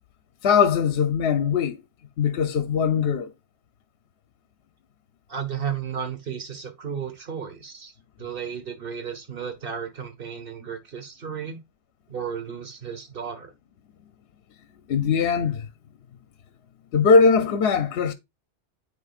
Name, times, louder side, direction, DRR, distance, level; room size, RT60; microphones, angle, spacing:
voice 1, 0.4-1.8 2.2-3.3 14.9-15.7 16.9-18.1, left 5 dB, 65° left, 0.9 m, -20 dB
voice 2, 5.3-7.9 8.2-11.6 12.1-13.5, right 7 dB, 50° right, 1.5 m, -33 dB
9.8 x 4.3 x 2.4 m
omnidirectional pair, 1.2 m